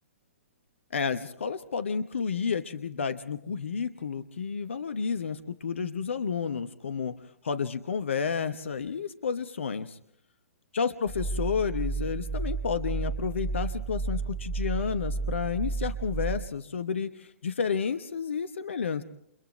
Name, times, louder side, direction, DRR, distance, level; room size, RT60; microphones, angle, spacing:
voice 1, 0.9-7.1 7.4-10.0 10.7-19.0, left 6 dB, 60° left, 11 dB, 1.0 m, -31 dB
sound 1, 11.1-16.4, right 4 dB, ahead, 6.0 m, -32 dB
30.0 x 27.0 x 3.2 m, 0.75 s
figure-of-eight pair, 120°, 7 cm